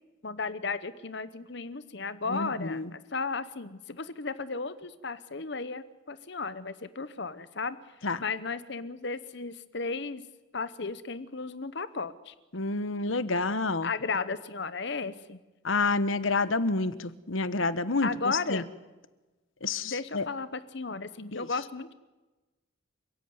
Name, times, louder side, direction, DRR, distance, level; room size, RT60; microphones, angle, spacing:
voice 1, 0.2-7.8 8.2-10.2 10.5-12.3 13.8-15.4 18.0-18.6 19.8-21.9, left 4 dB, 55° left, 14 dB, 0.9 m, -34 dB
voice 2, 2.3-2.9 8.0-8.2 12.5-13.9 15.6-18.6 19.6-20.3 21.3-21.5, left 3 dB, 75° left, 15 dB, 1.2 m, -29 dB
29.5 x 16.5 x 9.5 m, 1.2 s
head